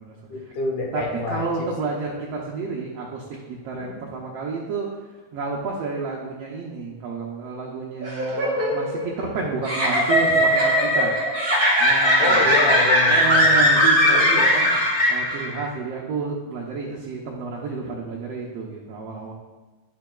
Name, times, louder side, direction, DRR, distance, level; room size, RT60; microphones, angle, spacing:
voice 1, 0.3-1.5 3.7-4.0 12.2-13.6 14.1-14.5, left 2 dB, 70° left, 0 dB, 2.3 m, -27 dB
voice 2, 0.9-4.9 5.3-11.1 11.8-12.7 13.0-19.3, right 4 dB, 85° right, -3 dB, 1.4 m, -30 dB
sound 1, 8.0-15.6, equal, 5° right, 1.3 m, -19 dB
10.5 x 5.6 x 2.3 m, 1.2 s
omnidirectional pair, 3.8 m